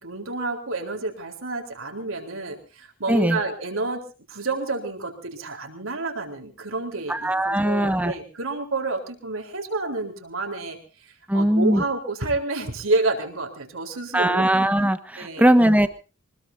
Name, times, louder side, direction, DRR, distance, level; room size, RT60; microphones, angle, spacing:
voice 1, 0.0-4.0 4.3-10.8 11.3-14.5 15.2-15.5, right 3 dB, 65° right, 3 dB, 4.1 m, -29 dB
voice 2, 3.1-3.4 7.1-8.1 11.3-11.8 14.1-15.9, right 1 dB, 5° right, 10 dB, 1.3 m, -20 dB
25.0 x 20.5 x 2.8 m, 0.34 s
head